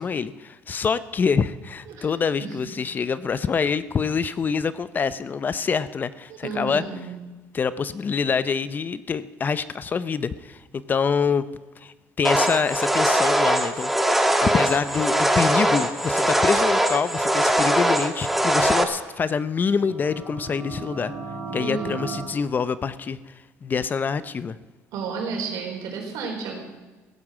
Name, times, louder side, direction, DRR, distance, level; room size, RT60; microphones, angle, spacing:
voice 1, 0.0-6.8 7.5-11.5 11.8-21.1 21.5-23.2 23.6-24.6, left 6 dB, 30° left, 16 dB, 0.6 m, -26 dB
voice 2, 6.3-7.1 21.6-22.1 24.9-26.6, right 4 dB, 75° right, 1 dB, 4.2 m, -32 dB
sound 1, 12.2-18.8, right 1 dB, 5° right, 1.4 m, -21 dB
sound 2, 19.7-22.2, right 4 dB, 55° right, 4.7 m, -35 dB
15.5 x 9.8 x 7.5 m, 1.2 s
cardioid pair, 115°, 6 cm